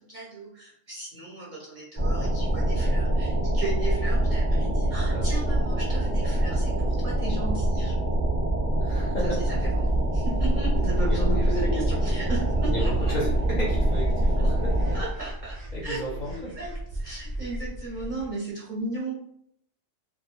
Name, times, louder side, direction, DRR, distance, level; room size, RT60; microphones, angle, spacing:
voice 1, 0.1-8.2 9.0-13.1 14.9-15.6 15.8-19.1, right 2 dB, 50° right, -6 dB, 0.6 m, -35 dB
sound 1, 2.0-15.0, right 1 dB, 15° right, 0.9 m, -24 dB
voice 2, 8.8-9.4 11.1-11.5 12.7-15.0 15.7-16.5, equal, 50° left, -6 dB, 0.6 m, -33 dB
sound 2, 9.9-18.3, right 1 dB, 85° right, 0.3 m, -35 dB
2.1 x 2.1 x 2.9 m, 0.73 s
omnidirectional pair, 1.3 m